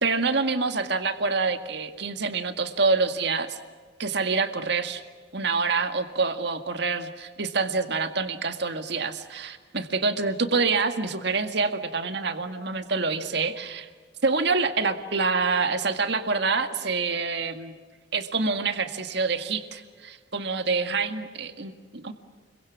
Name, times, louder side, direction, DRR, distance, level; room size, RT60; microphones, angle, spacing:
voice 1, 0.0-3.6 4.0-5.0 5.3-13.9 14.2-17.7 18.1-22.1, right 4 dB, 60° right, 8 dB, 1.9 m, -26 dB
30.0 x 23.0 x 7.3 m, 1.5 s
head